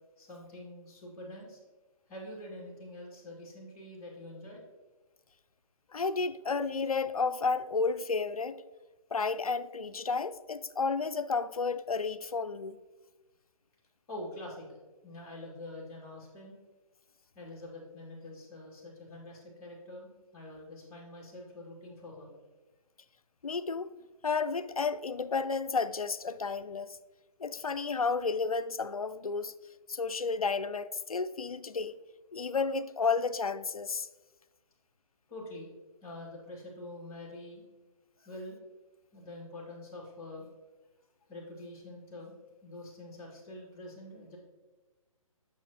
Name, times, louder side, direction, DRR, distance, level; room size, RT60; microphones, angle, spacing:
voice 1, 0.2-1.6 2.1-4.6 14.1-14.7 15.0-16.6 17.3-22.3 35.3-35.7 36.0-37.6 38.2-38.6 39.1-40.5 41.3-42.4 42.6-44.4, left 1 dB, 25° left, 2.2 m, -45 dB
voice 2, 5.9-8.6 9.1-12.8 23.4-23.9 24.2-27.0 27.4-29.5 29.9-32.0 32.3-34.1, left 4 dB, 85° left, 0.4 m, -32 dB
8.6 x 6.2 x 3.0 m
figure-of-eight pair, 135°, 18 cm